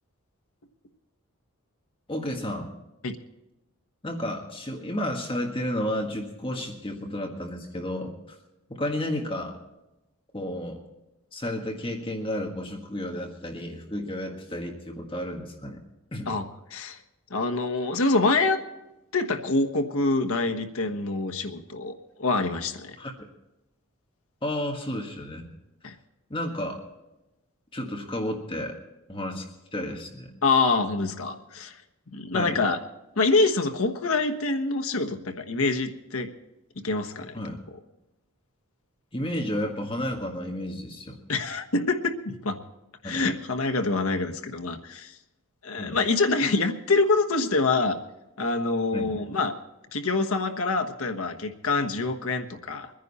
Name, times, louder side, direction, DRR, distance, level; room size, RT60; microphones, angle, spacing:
voice 1, 2.1-2.7 4.0-8.4 8.7-9.5 10.3-10.8 11.3-15.8 16.1-16.3 23.0-23.1 24.4-25.5 26.3-26.8 27.7-28.7 29.1-29.4 29.7-30.3 32.3-32.6 37.3-37.6 39.1-41.2 43.0-43.2 45.8-46.0 48.9-49.1, left 1 dB, 25° left, 1 dB, 1.6 m, -32 dB
voice 2, 17.3-18.6 19.1-23.0 25.8-25.9 30.4-31.8 32.1-32.8 33.2-36.3 36.8-37.3 41.3-42.6 43.0-45.1 45.6-48.0 48.4-49.6 49.9-52.9, left 3 dB, 75° left, 6 dB, 1.3 m, -25 dB
23.0 x 10.0 x 4.2 m, 0.97 s
head